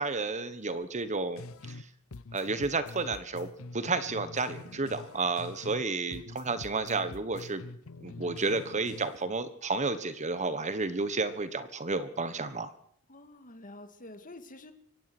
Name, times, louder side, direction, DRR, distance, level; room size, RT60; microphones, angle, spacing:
voice 1, 0.0-1.9 2.3-7.6 8.0-12.7, right 3 dB, 35° right, 12 dB, 1.3 m, -31 dB
sound 1, 1.4-1.8 2.1-5.8 6.1-9.3, left 3 dB, 70° left, 0.8 m, -45 dB
voice 2, 13.1-14.7, left 2 dB, 40° left, 9 dB, 2.1 m, -48 dB
24.0 x 17.5 x 6.2 m, 0.65 s
head